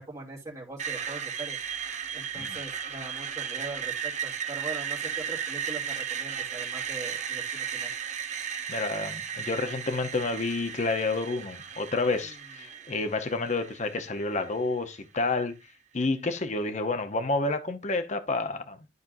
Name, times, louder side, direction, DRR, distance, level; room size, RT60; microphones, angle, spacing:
voice 1, 0.0-1.6 2.1-7.9 12.1-13.0, right 3 dB, 20° right, 2.8 m, -42 dB
Screech, 0.8-14.7, right 8 dB, 40° right, 1.0 m, -35 dB
voice 2, 8.7-15.6 15.9-18.8, left 3 dB, 40° left, 0.9 m, -29 dB
12.0 x 4.4 x 2.6 m
head